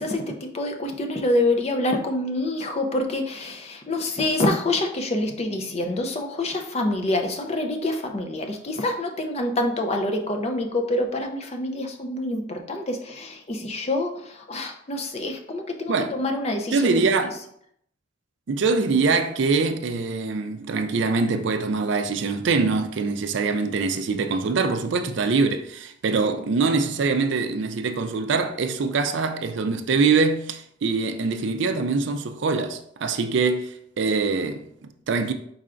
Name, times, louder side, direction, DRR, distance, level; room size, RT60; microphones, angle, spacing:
voice 1, 0.0-17.0, left 1 dB, 30° left, 0.5 m, -26 dB
voice 2, 16.7-17.3 18.5-35.3, right 4 dB, 60° right, 0.4 m, -24 dB
4.7 x 4.4 x 2.5 m
head